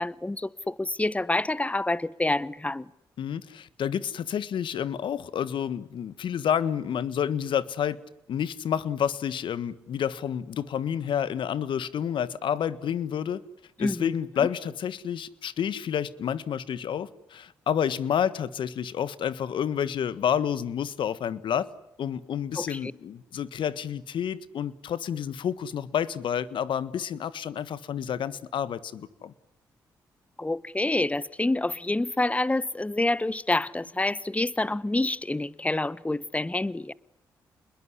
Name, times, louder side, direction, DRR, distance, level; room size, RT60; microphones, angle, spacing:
voice 1, 0.0-2.9 13.8-14.1 22.6-22.9 30.4-36.9, left 2 dB, 15° left, 1.1 m, -27 dB
voice 2, 3.2-8.0 8.3-13.4 13.8-21.7 22.0-29.3, left 8 dB, 70° left, 1.5 m, -29 dB
28.5 x 21.5 x 9.7 m
supercardioid pair, 45°, 9 cm